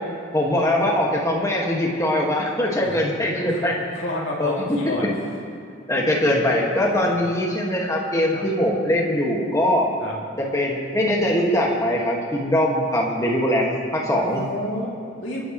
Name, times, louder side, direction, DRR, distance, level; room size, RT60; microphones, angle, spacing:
voice 1, 0.3-3.7 4.4-4.5 5.9-9.9 10.4-14.4, left 1 dB, 15° left, -2 dB, 1.8 m, -22 dB
voice 2, 3.5-5.0 6.9-7.1 8.3-8.4 10.0-10.1 14.2-15.5, left 1 dB, 75° left, -5 dB, 2.7 m, -30 dB
28.0 x 10.0 x 3.2 m, 2.4 s
head